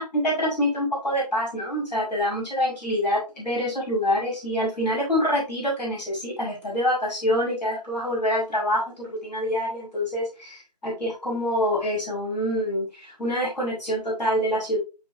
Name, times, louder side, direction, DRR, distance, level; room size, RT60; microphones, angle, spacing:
voice 1, 0.1-14.8, equal, ahead, -30 dB, 1.0 m, -26 dB
7.9 x 4.8 x 2.7 m, 0.29 s
figure-of-eight pair, 175°, 21 cm